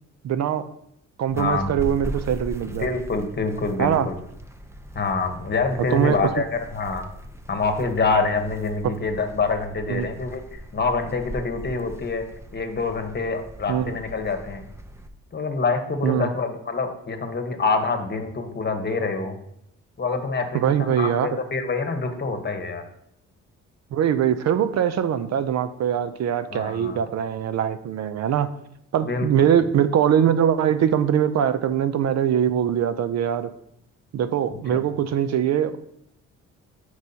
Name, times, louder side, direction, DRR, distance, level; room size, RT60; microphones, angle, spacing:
voice 1, 0.2-0.7 1.2-2.9 3.8-4.1 5.9-6.2 8.8-8.9 9.9-10.1 13.7-13.9 16.0-16.3 20.5-21.3 23.9-28.5 28.9-33.5 34.1-35.8, right 9 dB, 60° right, 12 dB, 0.6 m, -22 dB
voice 2, 1.3-1.7 2.7-4.2 4.9-7.0 7.5-12.2 12.5-14.7 15.3-19.4 20.0-22.8 26.5-27.0 29.0-29.5 34.7-34.8, left 4 dB, 35° left, 6 dB, 1.2 m, -26 dB
sound 1, 1.3-15.1, equal, 10° right, 0.6 m, -39 dB
10.5 x 4.8 x 2.8 m, 0.73 s
cardioid pair, 90°, 30 cm